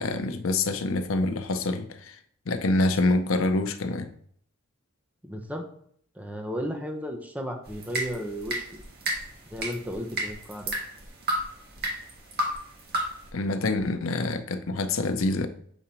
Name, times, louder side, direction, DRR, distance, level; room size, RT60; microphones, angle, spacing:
voice 1, 0.0-2.2 2.5-4.1 13.3-15.5, left 2 dB, 80° left, 0.6 m, -26 dB
voice 2, 5.2-5.6 6.2-8.6 9.5-10.7, equal, 5° right, 0.9 m, -34 dB
sound 1, 7.7-13.3, right 1 dB, 50° right, 1.7 m, -33 dB
7.0 x 3.8 x 4.3 m
head